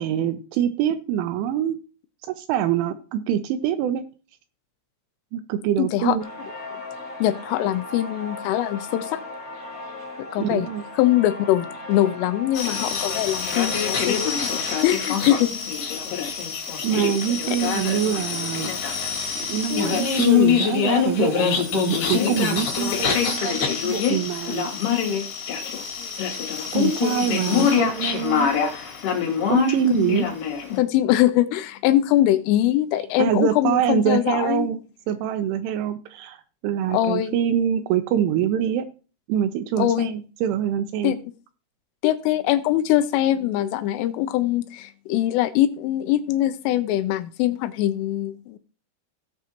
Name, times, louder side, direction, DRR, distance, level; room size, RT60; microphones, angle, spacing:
voice 1, 0.0-1.8 2.2-4.0 5.3-6.2 10.4-10.8 16.8-18.7 19.4-24.7 26.7-28.5 29.5-30.3 33.2-34.8 35.1-38.9 39.3-41.2, right 10 dB, 80° right, 9 dB, 2.8 m, -24 dB
voice 2, 5.8-6.2 7.2-9.2 10.3-10.7 11.0-14.5 14.8-15.5 17.5-17.6 27.5-27.7 29.9-30.2 30.8-34.7 36.9-37.4 39.8-40.1 41.0-41.2 42.0-48.6, left 13 dB, 85° left, 12 dB, 3.0 m, -22 dB
sound 1, 6.2-14.9, left 2 dB, 20° left, 1.8 m, -37 dB
sound 2, 12.5-30.8, left 7 dB, 55° left, 3.7 m, -24 dB
17.5 x 6.1 x 2.9 m, 0.36 s
omnidirectional pair, 6.0 m